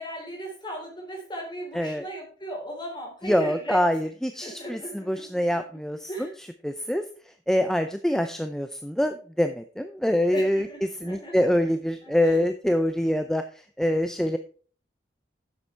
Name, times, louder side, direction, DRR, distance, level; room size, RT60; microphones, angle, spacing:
voice 1, 0.0-3.8 4.4-5.4 6.1-6.3 10.3-11.4 12.0-12.4, right 1 dB, 25° left, 0 dB, 3.9 m, -37 dB
voice 2, 3.2-6.3 6.6-10.7 11.0-14.4, equal, 5° left, 8 dB, 0.5 m, -25 dB
9.9 x 7.1 x 4.5 m, 0.42 s
head